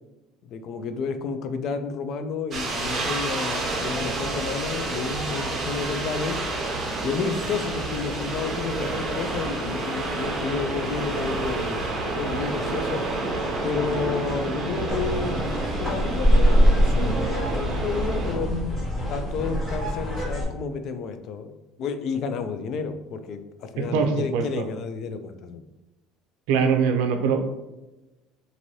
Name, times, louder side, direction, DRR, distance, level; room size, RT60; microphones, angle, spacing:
voice 1, 0.4-6.4 7.0-11.8 12.1-13.0 13.6-18.5 19.1-21.5 21.8-25.6, left 5 dB, 50° left, 9 dB, 0.3 m, -31 dB
sound 1, 2.5-18.3, right 2 dB, 35° right, 0.7 m, -29 dB
sound 2, 14.9-20.4, equal, 20° left, 0.9 m, -23 dB
voice 2, 23.8-24.6 26.5-27.6, right 5 dB, 80° right, 6 dB, 0.4 m, -23 dB
2.6 x 2.6 x 3.0 m, 1.0 s
cardioid pair, 135°, 0 cm